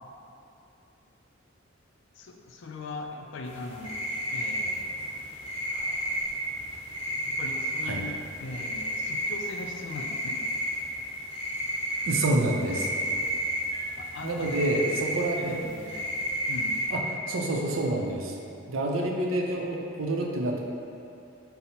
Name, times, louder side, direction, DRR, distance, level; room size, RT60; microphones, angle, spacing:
voice 1, 2.1-4.0 4.3-4.9 7.3-10.4 14.0-16.1 16.5-16.8, left 3 dB, 65° left, 2 dB, 0.4 m, -40 dB
sound 1, 3.4-16.9, equal, 30° left, 1.2 m, -32 dB
voice 2, 12.1-12.9 14.2-15.6 16.9-17.0 17.3-18.4 18.7-20.6, right 2 dB, 80° right, 0 dB, 0.5 m, -28 dB
5.5 x 2.0 x 4.3 m, 2.7 s
head